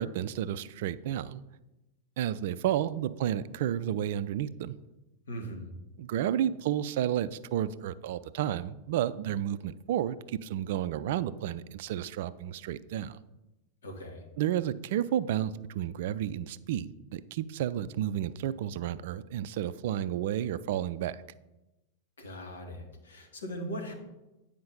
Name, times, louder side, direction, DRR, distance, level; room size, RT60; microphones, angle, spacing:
voice 1, 0.0-1.4 2.2-4.8 6.0-13.2 14.4-21.2, right 11 dB, 55° right, 15 dB, 0.3 m, -31 dB
voice 2, 5.3-5.7 13.8-14.2 22.2-23.9, equal, 65° left, 3 dB, 1.8 m, -39 dB
9.5 x 5.1 x 5.3 m, 0.99 s
figure-of-eight pair, 90°, 0 cm